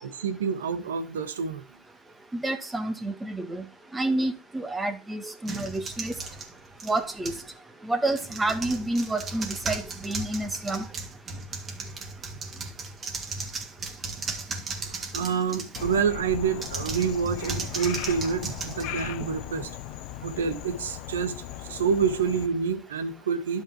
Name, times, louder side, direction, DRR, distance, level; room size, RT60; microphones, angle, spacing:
voice 1, 0.0-1.6 14.8-19.7 20.2-21.3 21.7-23.6, right 6 dB, 80° right, 1.6 m, -28 dB
voice 2, 2.3-3.6 3.9-6.1 6.8-7.3 7.8-10.8, right 2 dB, 10° right, 1.7 m, -29 dB
sound 1, 5.4-7.5 8.1-16.0 16.5-19.5, right 3 dB, 25° right, 2.5 m, -36 dB
Frog, 15.8-22.5, left 13 dB, 55° left, 0.7 m, -38 dB
11.5 x 5.7 x 4.7 m
hypercardioid pair, 105°, 0 cm